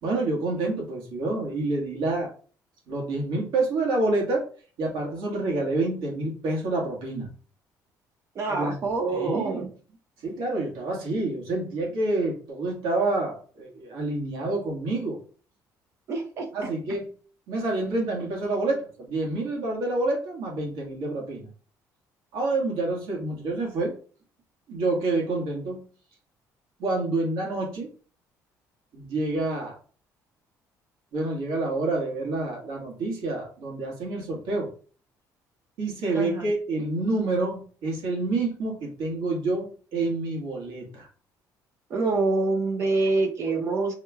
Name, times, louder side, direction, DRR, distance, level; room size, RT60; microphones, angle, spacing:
voice 1, 0.0-2.3 2.9-4.4 4.8-7.3 8.5-8.8 9.1-9.7 10.2-15.2 16.5-17.1 17.5-21.4 22.3-23.9 24.7-25.8 26.8-27.9 28.9-29.7 31.1-34.7 35.8-41.1, right 2 dB, 90° right, -2 dB, 1.7 m, -28 dB
voice 2, 8.3-9.7 16.1-16.5 36.1-36.5 41.9-43.9, right 3 dB, 40° right, 3 dB, 0.7 m, -26 dB
5.7 x 3.2 x 2.3 m, 0.42 s
cardioid pair, 155°, 7 cm